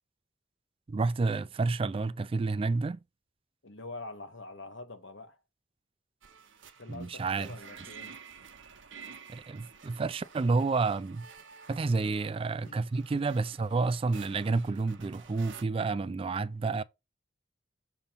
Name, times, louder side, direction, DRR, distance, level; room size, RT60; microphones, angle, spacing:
voice 1, 0.9-3.0 6.9-7.6 9.3-11.3 11.7-16.8, right 3 dB, 30° right, 0.3 m, -30 dB
voice 2, 3.6-5.4 6.8-8.2 12.0-12.2 12.6-12.8, left 2 dB, 70° left, 1.2 m, -45 dB
sound 1, 6.2-15.6, right 6 dB, 80° right, 0.8 m, -51 dB
6.8 x 2.9 x 5.4 m
head